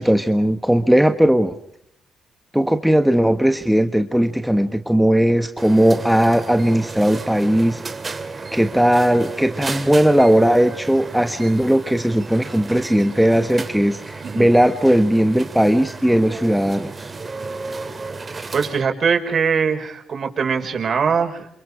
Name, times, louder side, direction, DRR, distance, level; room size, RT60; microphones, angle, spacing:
voice 1, 0.0-1.6 2.5-7.8 8.5-17.2, equal, ahead, 7 dB, 1.3 m, -17 dB
sound 1, 5.6-18.8, right 3 dB, 30° right, 2.7 m, -33 dB
voice 2, 18.5-21.5, right 6 dB, 50° right, 5 dB, 5.4 m, -21 dB
29.0 x 28.0 x 4.9 m, 0.70 s
cardioid pair, 90°, 0 cm